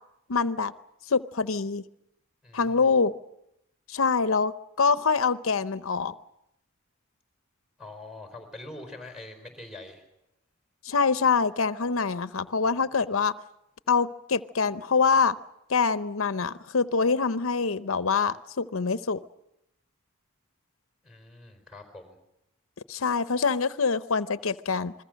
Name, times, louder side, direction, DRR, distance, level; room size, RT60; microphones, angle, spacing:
voice 1, 0.3-0.7 1.1-1.8 2.5-3.1 3.9-4.5 4.8-6.1 10.9-13.3 13.9-15.3 15.7-19.2 22.9-24.9, left 5 dB, 70° left, 13 dB, 0.8 m, -25 dB
voice 2, 2.4-2.9 7.8-10.0 21.0-22.2, left 2 dB, 5° right, 5 dB, 4.6 m, -44 dB
27.5 x 21.0 x 6.5 m, 0.83 s
head